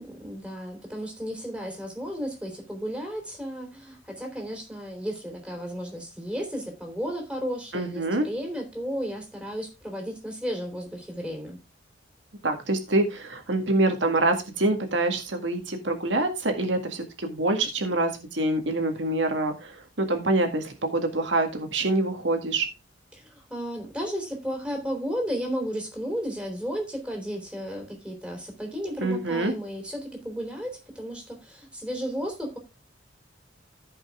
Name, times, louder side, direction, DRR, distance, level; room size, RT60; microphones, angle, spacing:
voice 1, 0.0-11.6 23.1-32.6, equal, 5° right, 1 dB, 3.8 m, -33 dB
voice 2, 7.7-8.3 12.4-22.7 29.0-29.5, right 2 dB, 90° right, 5 dB, 1.9 m, -26 dB
14.5 x 5.5 x 3.6 m, 0.28 s
head